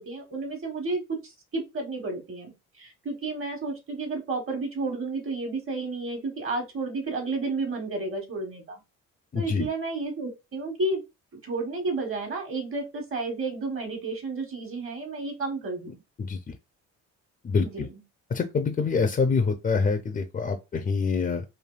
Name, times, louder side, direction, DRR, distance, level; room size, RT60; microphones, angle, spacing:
voice 1, 0.0-8.8 9.3-11.0 11.4-16.0 17.6-18.0, right 3 dB, 45° right, 1.4 m, -32 dB
voice 2, 9.3-9.7 15.9-16.4 17.4-17.9 18.3-21.4, left 5 dB, 30° left, 0.5 m, -26 dB
3.3 x 2.5 x 2.4 m
cardioid pair, 90°, 30 cm